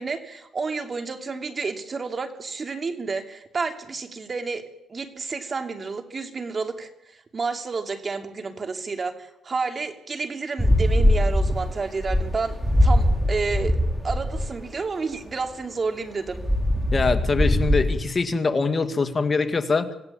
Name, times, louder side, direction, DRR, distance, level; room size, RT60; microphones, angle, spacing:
voice 1, 0.0-4.6 4.9-12.5 12.8-13.8 14.0-16.4, right 4 dB, 35° right, 6 dB, 3.1 m, -30 dB
sound 1, 10.6-14.5 16.3-18.0, left 1 dB, ahead, 3.6 m, -21 dB
voice 2, 16.9-19.9, left 4 dB, 30° left, 8 dB, 2.4 m, -23 dB
26.5 x 16.0 x 8.7 m, 0.89 s
cardioid pair, 90°, 0 cm